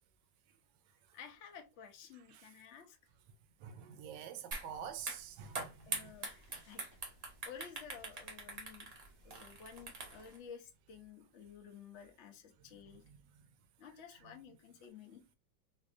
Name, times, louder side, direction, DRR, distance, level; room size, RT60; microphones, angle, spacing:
voice 1, 1.1-3.0 5.8-6.8 7.4-8.9 9.2-13.0 13.8-15.2, left 7 dB, 65° left, 0.7 m, -53 dB
voice 2, 3.6-6.1 13.1-13.2 14.3-14.4, right 8 dB, 70° right, 1.1 m, -47 dB
sound 1, 4.5-4.7 5.0-10.4, right 3 dB, 45° right, 0.8 m, -43 dB
4.2 x 2.6 x 2.6 m
omnidirectional pair, 2.3 m